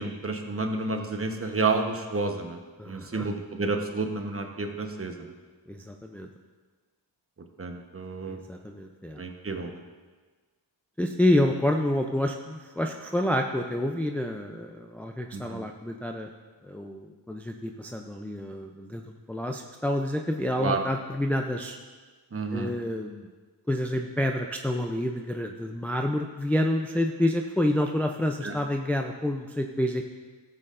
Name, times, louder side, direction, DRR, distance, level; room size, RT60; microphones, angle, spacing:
voice 1, 0.0-2.6 2.9-5.1 7.6-8.4 9.2-9.7 15.3-15.7 20.6-20.8 22.3-22.7 28.4-28.5, right 3 dB, 30° right, 4 dB, 1.1 m, -30 dB
voice 2, 2.8-3.3 5.7-6.3 8.3-9.2 11.0-16.3 16.6-21.8 22.5-23.3 23.7-30.0, left 1 dB, 5° left, 3 dB, 0.5 m, -28 dB
13.5 x 7.6 x 2.5 m, 1.4 s
cardioid pair, 70°, 45 cm